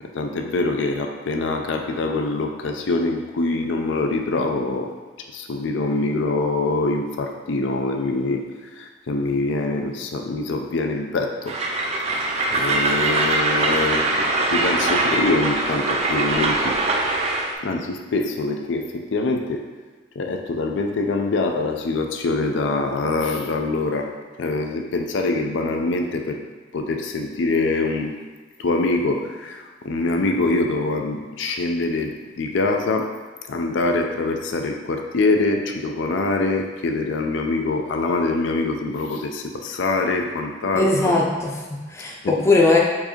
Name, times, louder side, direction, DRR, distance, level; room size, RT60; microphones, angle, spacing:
voice 1, 0.0-4.9 5.3-8.4 8.8-11.8 12.5-16.7 17.6-19.6 20.2-24.1 24.4-26.4 26.7-28.1 28.6-33.1 33.5-41.1 42.2-42.3, left 3 dB, 75° left, 3 dB, 0.4 m, -24 dB
Train, 11.5-17.5, right 2 dB, 35° right, 0.5 m, -22 dB
voice 2, 40.8-42.8, left 2 dB, 15° left, -2 dB, 0.5 m, -19 dB
4.6 x 2.7 x 4.3 m, 1.3 s
head